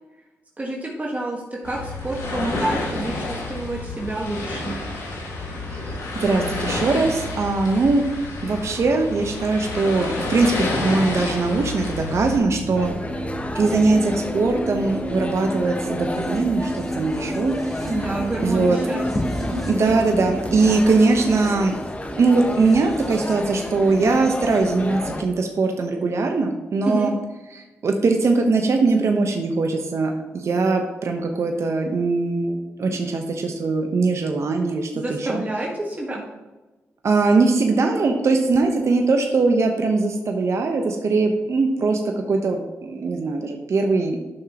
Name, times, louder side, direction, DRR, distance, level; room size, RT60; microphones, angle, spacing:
voice 1, 0.6-4.8 17.9-19.8 26.8-27.1 34.9-36.3, right 1 dB, 30° right, -2 dB, 1.5 m, -28 dB
sound 1, 1.6-12.4, left 2 dB, 90° left, 1.9 m, -29 dB
voice 2, 6.2-8.0 8.4-12.9 13.5-17.9 18.4-18.8 19.7-21.8 22.1-27.1 27.5-35.4 37.0-42.0 42.3-44.2, right 3 dB, 60° right, 3 dB, 1.0 m, -21 dB
sound 2, 12.3-24.7, right 1 dB, ahead, 2.5 m, -33 dB
sound 3, 12.7-25.2, left 1 dB, 25° left, 1.0 m, -31 dB
10.5 x 6.1 x 3.0 m, 1.1 s
cardioid pair, 60°, 5 cm